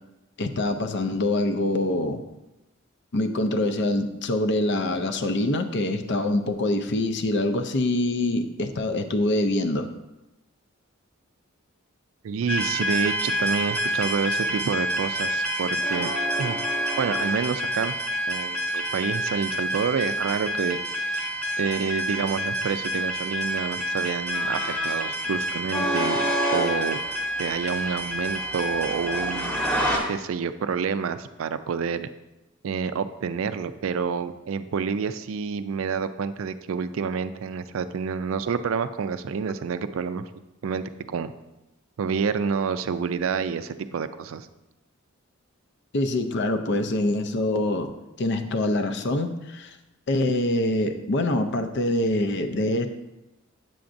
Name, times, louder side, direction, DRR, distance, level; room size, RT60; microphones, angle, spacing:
voice 1, 0.4-2.2 3.1-9.9 45.9-47.9 48.2-49.7 50.1-52.9, left 1 dB, 55° left, 8 dB, 0.5 m, -25 dB
voice 2, 12.2-16.1 16.4-16.6 17.0-17.9 18.3-20.8 21.0-21.3 21.6-27.0 27.4-29.6 30.1-32.1 32.6-40.2 40.6-41.3 42.0-44.5, right 6 dB, 70° right, 11 dB, 0.4 m, -28 dB
sound 1, 12.5-30.0, right 1 dB, 5° left, 0.9 m, -27 dB
7.7 x 7.1 x 2.6 m, 0.98 s
head